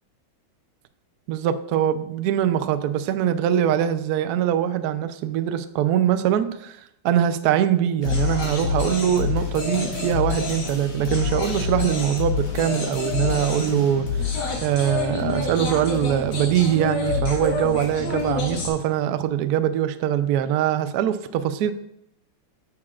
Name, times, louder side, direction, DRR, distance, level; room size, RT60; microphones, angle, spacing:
voice 1, 1.3-6.8 7.0-21.7, right 10 dB, 90° right, 10 dB, 0.8 m, -23 dB
sound 1, 8.0-18.7, left 5 dB, 75° left, 2.4 m, -27 dB
9.5 x 7.1 x 2.4 m, 0.78 s
omnidirectional pair, 2.3 m